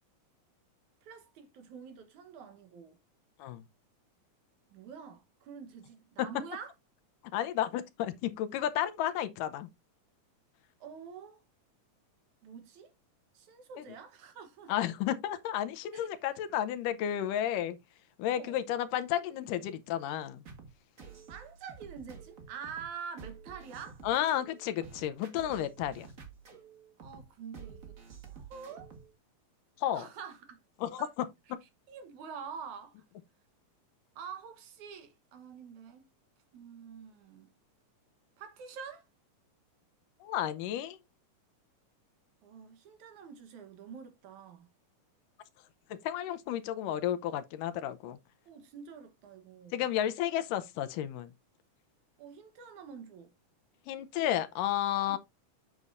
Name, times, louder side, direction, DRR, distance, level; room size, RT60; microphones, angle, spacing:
voice 1, 1.0-3.0 4.7-6.7 10.8-11.4 12.4-12.9 13.3-14.7 15.9-16.1 18.3-18.6 21.3-24.0 27.0-28.0 28.3-28.9 29.9-30.6 31.0-31.1 31.9-33.0 34.2-36.1 36.5-37.5 38.4-39.1 42.4-44.7 48.5-49.8 52.2-53.3 55.1-55.2, right 6 dB, 70° right, 2.4 m, -46 dB
voice 2, 7.3-9.7 13.8-13.9 14.7-17.8 18.2-20.4 24.0-26.1 29.8-30.1 30.8-31.3 40.2-41.0 45.9-48.2 49.7-51.3 53.9-55.2, left 11 dB, 85° left, 2.3 m, -32 dB
sound 1, 20.5-29.1, right 6 dB, 35° right, 1.4 m, -50 dB
8.2 x 7.1 x 2.6 m
omnidirectional pair, 3.8 m